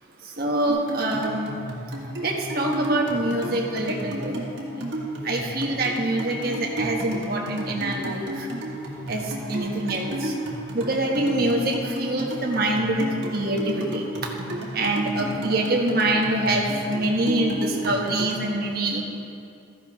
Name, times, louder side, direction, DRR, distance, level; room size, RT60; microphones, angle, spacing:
voice 1, 0.4-1.5 2.2-4.3 4.7-4.8 5.2-8.5 9.1-10.3 10.7-14.0 14.7-19.0, right 1 dB, 50° right, 0 dB, 1.4 m, -25 dB
sound 1, 0.7-18.5, right 1 dB, 65° right, 1.9 m, -32 dB
14.0 x 11.0 x 3.6 m, 2.5 s
head